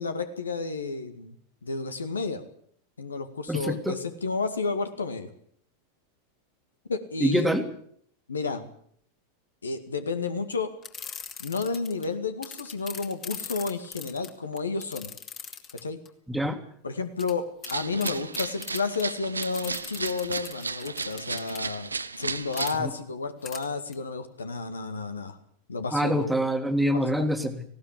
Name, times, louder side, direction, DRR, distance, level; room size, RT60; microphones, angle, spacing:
voice 1, 0.0-1.4 1.6-2.4 3.0-5.3 6.9-7.5 8.3-8.6 9.6-10.7 11.4-15.1 15.7-16.0 16.8-21.9 22.2-25.4 25.7-26.3 26.9-27.3, left 4 dB, 75° left, 9 dB, 2.0 m, -31 dB
voice 2, 3.5-4.0 7.2-7.6 16.3-16.6 22.8-22.9 25.9-27.6, equal, 5° right, 7 dB, 2.1 m, -25 dB
sound 1, 10.8-12.1 12.4-16.1 17.2-17.3 17.6-17.8 18.0-19.0 19.4-21.6 22.5-22.7 23.5-23.6 23.9-24.0, left 7 dB, 30° left, 2.5 m, -40 dB
sound 2, 17.6-22.8, right 4 dB, 80° right, 0.8 m, -34 dB
19.0 x 17.0 x 8.6 m, 0.64 s
figure-of-eight pair, 90°, 0 cm